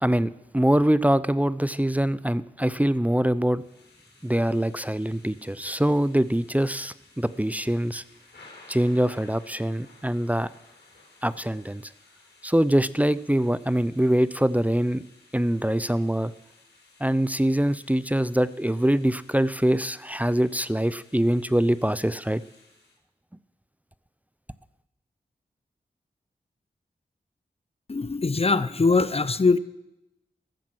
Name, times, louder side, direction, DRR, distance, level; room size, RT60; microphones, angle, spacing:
voice 1, 0.0-3.6 4.2-8.0 8.7-10.5 11.2-11.8 12.4-15.0 15.3-16.3 17.0-22.4, right 1 dB, 10° right, 17 dB, 0.5 m, -24 dB
Thunder / Rain, 3.5-23.0, left 3 dB, 75° left, 4.3 m, -56 dB
voice 2, 27.9-29.6, left 4 dB, 35° left, 16 dB, 0.6 m, -22 dB
13.5 x 7.2 x 7.7 m, 0.90 s
cardioid pair, 40°, 18 cm